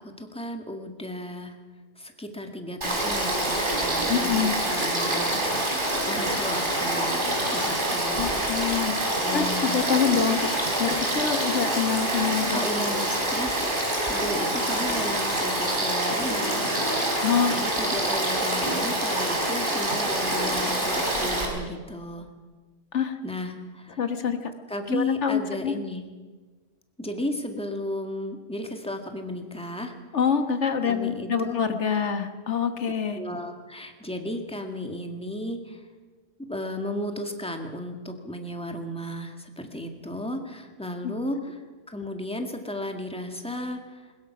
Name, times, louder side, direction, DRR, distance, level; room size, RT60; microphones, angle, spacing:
voice 1, 0.0-1.6 2.0-5.3 6.0-8.3 9.2-10.0 12.5-13.5 14.0-16.7 17.5-22.3 23.2-24.1 24.7-26.0 27.0-29.9 30.8-31.6 33.1-35.8 36.5-41.6 41.9-44.0, left 1 dB, 5° left, 4 dB, 1.9 m, -34 dB
Frog / Stream, 2.8-21.5, right 1 dB, 45° right, 4.3 m, -26 dB
voice 2, 4.1-4.5 8.2-9.0 9.3-10.5 10.8-12.6 17.2-17.5 22.9-23.2 24.0-24.5 24.9-25.7 30.1-33.2 41.0-41.1, left 7 dB, 90° left, 7 dB, 1.7 m, -26 dB
21.5 x 21.0 x 6.0 m, 1.3 s
omnidirectional pair, 1.2 m